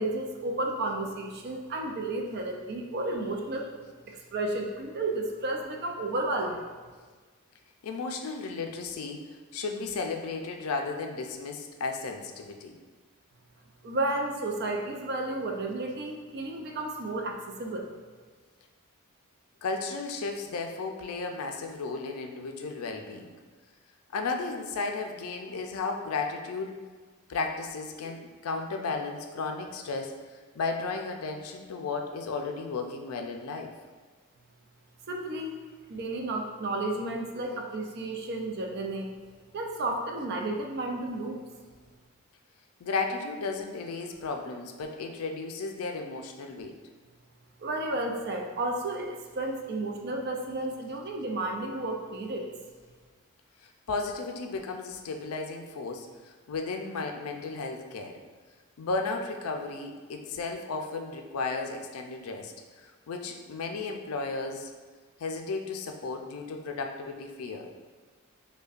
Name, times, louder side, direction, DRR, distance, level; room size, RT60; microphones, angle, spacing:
voice 1, 0.0-3.7 4.1-6.7 13.8-17.9 35.1-35.6 35.9-39.2 39.5-41.4 47.6-52.5, right 2 dB, 50° right, 2 dB, 0.4 m, -32 dB
voice 2, 7.8-12.8 19.6-23.3 24.1-26.8 27.3-30.1 30.5-33.7 42.8-46.8 53.6-58.2 58.8-64.7 65.2-67.7, left 4 dB, 80° left, 4 dB, 0.4 m, -34 dB
5.1 x 2.2 x 2.4 m, 1.4 s
head